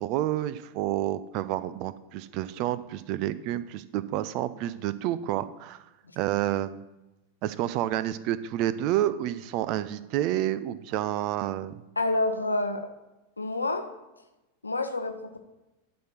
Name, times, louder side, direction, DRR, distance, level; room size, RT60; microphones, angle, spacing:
voice 1, 0.0-5.9 6.2-6.8 7.4-11.7, right 13 dB, 40° right, 15 dB, 0.4 m, -29 dB
voice 2, 12.0-12.9 13.4-13.9 14.6-15.4, left 2 dB, 80° left, 6 dB, 0.8 m, -28 dB
11.5 x 4.5 x 5.8 m, 1.0 s
figure-of-eight pair, 90°, 0 cm